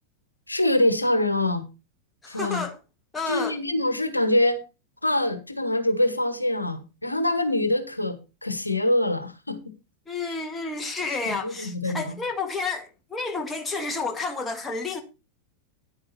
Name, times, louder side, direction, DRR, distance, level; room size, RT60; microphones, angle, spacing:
voice 1, 0.5-1.6 2.3-2.6 3.3-4.6 5.0-9.7 10.3-10.4 11.2-12.2, left 1 dB, 85° left, 1.1 m, -24 dB
voice 2, 2.2-2.8 3.1-3.6 10.1-15.0, left 4 dB, 15° left, 1.8 m, -30 dB
10.0 x 8.7 x 4.1 m
figure-of-eight pair, 90°, 0 cm